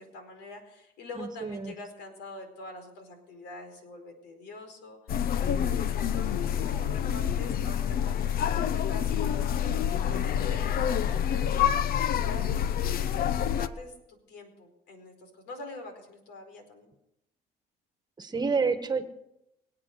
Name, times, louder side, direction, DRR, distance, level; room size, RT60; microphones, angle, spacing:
voice 1, 0.0-5.0 5.4-8.4 8.7-13.9 14.3-16.9, left 2 dB, 85° left, 6 dB, 4.7 m, -45 dB
voice 2, 1.2-1.7 18.2-19.0, right 4 dB, 25° right, 9 dB, 1.5 m, -29 dB
sound 1, 5.1-13.7, left 9 dB, 60° left, 0.9 m, -27 dB
24.5 x 8.7 x 6.7 m, 0.85 s
cardioid pair, 110°, 17 cm